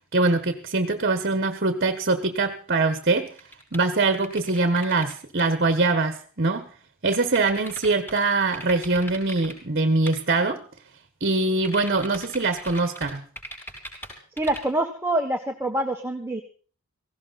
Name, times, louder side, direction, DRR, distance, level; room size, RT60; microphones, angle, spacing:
voice 1, 0.1-3.3 3.7-6.7 7.0-10.6 11.2-13.2, right 3 dB, 45° right, 10 dB, 1.5 m, -23 dB
sound 1, 2.9-5.1 5.4-5.5 7.1-8.2 8.5-9.5 10.1-10.2 11.6-14.8, equal, 10° left, 6.0 m, -39 dB
voice 2, 14.4-16.4, right 1 dB, 10° right, 2 dB, 1.5 m, -26 dB
17.5 x 16.5 x 4.2 m, 0.41 s
head